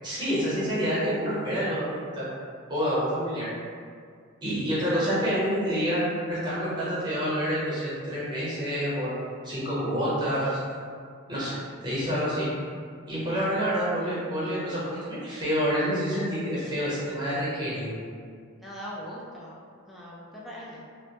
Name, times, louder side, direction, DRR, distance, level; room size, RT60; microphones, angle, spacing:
voice 1, 0.0-2.2 2.7-3.5 4.4-10.6 11.3-11.5 11.8-12.5 13.1-18.0, equal, 20° right, -10 dB, 0.9 m, -28 dB
voice 2, 18.6-20.9, equal, ahead, -6 dB, 0.4 m, -41 dB
2.1 x 2.1 x 2.8 m, 2.1 s
head